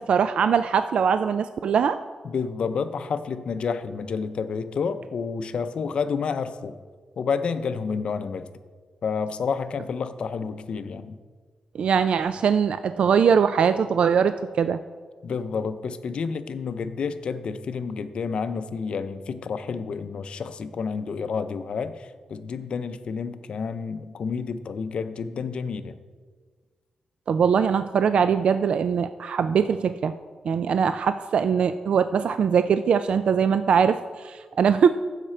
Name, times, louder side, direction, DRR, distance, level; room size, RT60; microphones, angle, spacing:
voice 1, 0.0-2.0 11.8-14.8 27.3-30.1 30.5-34.9, right 7 dB, 60° right, 11 dB, 0.3 m, -21 dB
voice 2, 2.2-6.7 7.2-8.5 9.0-11.2 15.2-25.9, left 5 dB, 55° left, 11 dB, 0.5 m, -29 dB
14.5 x 6.6 x 4.4 m, 1.5 s
wide cardioid pair, 155°, 2 cm